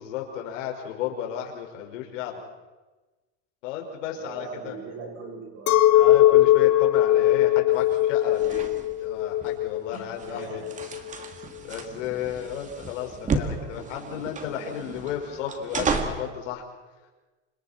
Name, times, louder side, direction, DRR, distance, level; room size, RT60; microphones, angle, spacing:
voice 1, 0.0-2.3 3.6-4.8 5.9-8.7 9.0-10.4 11.7-16.6, left 9 dB, 85° left, 1 dB, 5.7 m, -33 dB
voice 2, 4.1-5.9 9.9-10.0 10.3-10.7 13.3-13.9, right 4 dB, 40° right, -1 dB, 8.0 m, -40 dB
Chink clink, 5.7-11.1, left 14 dB, 40° left, 1.6 m, -20 dB
sound 1, 7.7-16.3, right 4 dB, 20° right, 2.1 m, -33 dB
29.5 x 26.5 x 4.5 m, 1.2 s
supercardioid pair, 145°, 36 cm